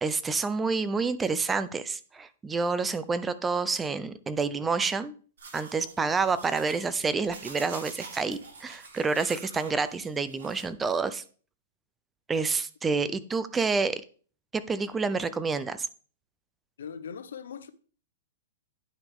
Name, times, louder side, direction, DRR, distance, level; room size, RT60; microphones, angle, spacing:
voice 1, 0.0-5.1 5.5-11.2 12.3-14.0 14.5-15.9, right 4 dB, 10° right, 0.5 m, -28 dB
sound 1, 5.4-10.6, right 4 dB, 80° right, 3.4 m, -46 dB
voice 2, 16.8-17.7, left 7 dB, 85° left, 0.7 m, -40 dB
9.6 x 5.8 x 3.7 m
hypercardioid pair, 145°, 0 cm